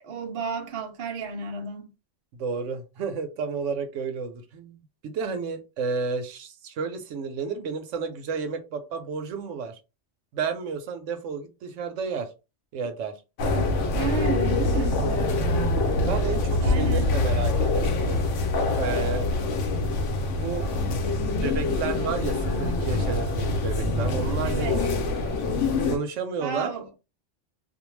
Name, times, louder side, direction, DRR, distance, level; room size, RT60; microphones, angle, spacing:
voice 1, 0.0-1.9 13.5-15.0 16.6-17.1 24.4-24.8 26.4-26.9, right 5 dB, 55° right, 0.8 m, -32 dB
voice 2, 2.3-9.8 10.3-12.3 12.7-13.2 15.4-15.7 16.1-18.2 18.8-19.3 20.4-20.7 21.4-25.4 25.8-26.7, right 5 dB, 85° right, 1.0 m, -31 dB
sound 1, 13.4-26.0, left 2 dB, 80° left, 1.0 m, -25 dB
2.5 x 2.1 x 3.1 m
omnidirectional pair, 1.2 m